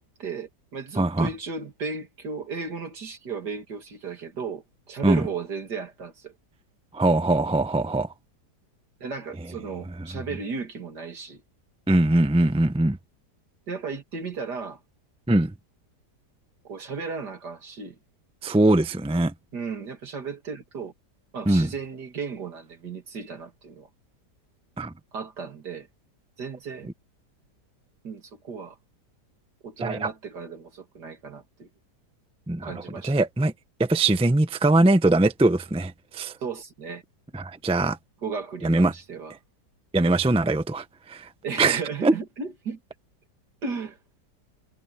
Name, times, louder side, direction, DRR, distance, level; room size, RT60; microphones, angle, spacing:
voice 1, 0.0-6.3 9.0-11.4 13.7-14.8 16.6-18.0 19.5-20.9 21.3-23.9 25.1-25.9 26.4-26.9 28.0-28.8 29.6-31.7 32.6-33.1 36.4-37.0 38.2-39.3 41.4-42.8 43.6-44.0, right 5 dB, 75° right, 3.0 m, -35 dB
voice 2, 1.0-1.3 5.0-5.2 6.9-8.1 11.9-13.0 15.3-15.5 18.4-19.3 21.5-21.7 24.8-24.9 29.8-30.1 32.5-32.7 33.0-33.5 33.8-36.3 37.3-38.0 38.6-38.9 39.9-41.3 41.6-42.1, right 2 dB, 5° right, 0.5 m, -21 dB
omnidirectional pair, 1.8 m